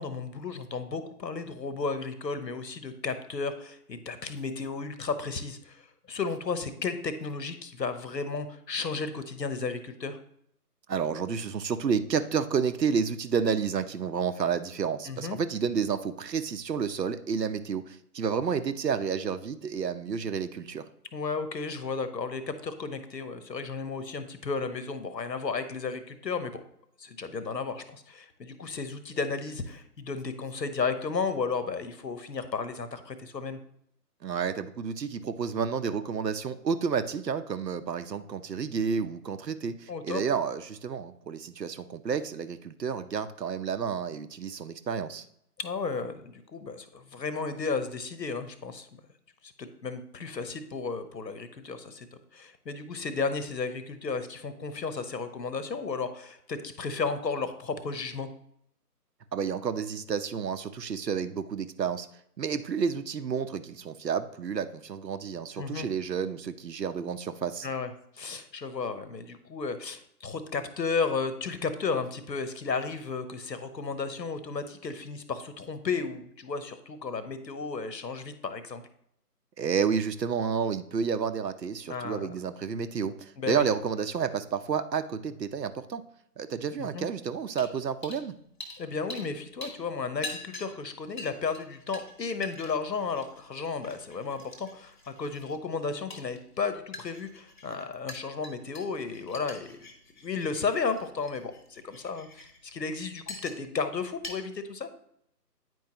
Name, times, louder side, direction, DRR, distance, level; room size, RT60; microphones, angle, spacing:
voice 1, 0.0-10.2 15.1-15.4 21.1-26.6 27.0-33.6 39.9-40.2 45.6-48.9 49.4-52.1 52.3-58.3 65.6-65.9 67.6-67.9 68.2-78.8 81.9-82.3 83.4-83.6 86.8-87.1 88.8-94.9 95.2-99.8 100.2-104.9, left 4 dB, 85° left, 11 dB, 1.0 m, -33 dB
voice 2, 10.9-20.9 34.2-45.3 59.3-62.1 62.4-67.7 79.6-86.0 86.4-88.3, right 6 dB, 80° right, 11 dB, 0.7 m, -30 dB
sound 1, 87.6-87.7 88.0-88.2 88.6-89.3 89.6-103.8 104.2-104.3, left 2 dB, 30° left, 0.8 m, -45 dB
9.2 x 4.6 x 2.9 m, 0.71 s
figure-of-eight pair, 160°, 49 cm